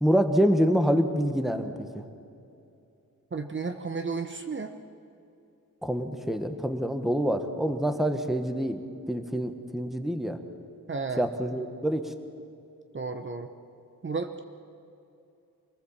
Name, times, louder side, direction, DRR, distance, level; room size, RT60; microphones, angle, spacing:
voice 1, 0.0-2.0 5.8-8.8 9.1-10.4 11.2-12.1, equal, ahead, 7 dB, 1.3 m, -26 dB
voice 2, 3.3-4.7 10.9-11.3 12.9-13.5 14.0-14.4, right 4 dB, 35° right, 6 dB, 1.0 m, -32 dB
26.0 x 19.5 x 7.3 m, 2.7 s
wide cardioid pair, 140°, 33 cm